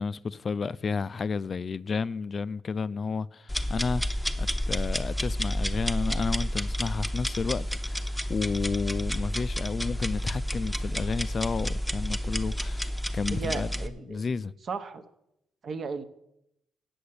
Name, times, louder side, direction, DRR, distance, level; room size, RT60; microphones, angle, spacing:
voice 1, 0.0-13.7 14.1-14.5, left 5 dB, 40° left, 0.3 m, -32 dB
sound 1, 3.5-13.9, equal, ahead, 0.8 m, -30 dB
voice 2, 13.3-14.2 14.7-15.0 15.6-16.0, right 5 dB, 50° right, 1.0 m, -35 dB
8.1 x 7.7 x 8.5 m
cardioid pair, 90°, 0 cm